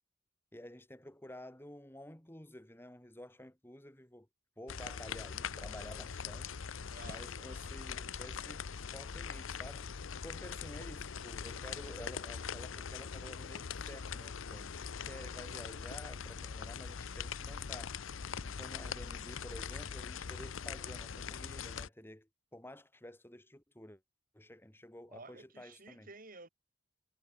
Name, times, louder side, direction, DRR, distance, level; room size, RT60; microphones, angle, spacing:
voice 1, 0.5-4.3 4.6-6.6 7.0-8.6 8.9-9.9 10.2-24.0 24.3-26.1, left 1 dB, 10° left, 2.4 m, -51 dB
sound 1, 4.7-21.9, left 6 dB, 80° left, 0.7 m, -42 dB
voice 2, 6.9-7.6 25.1-26.5, right 3 dB, 45° right, 5.2 m, -53 dB
head